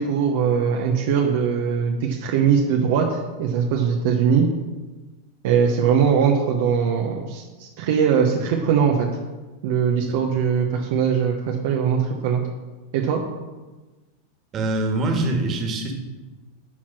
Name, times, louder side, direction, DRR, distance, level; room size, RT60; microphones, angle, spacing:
voice 1, 0.0-4.5 5.4-9.1 9.6-12.4 12.9-13.2, right 7 dB, 65° right, 1 dB, 0.9 m, -21 dB
voice 2, 14.5-15.9, right 2 dB, 35° right, 2 dB, 1.8 m, -23 dB
8.6 x 4.5 x 6.1 m, 1.2 s
hypercardioid pair, 95°, 0 cm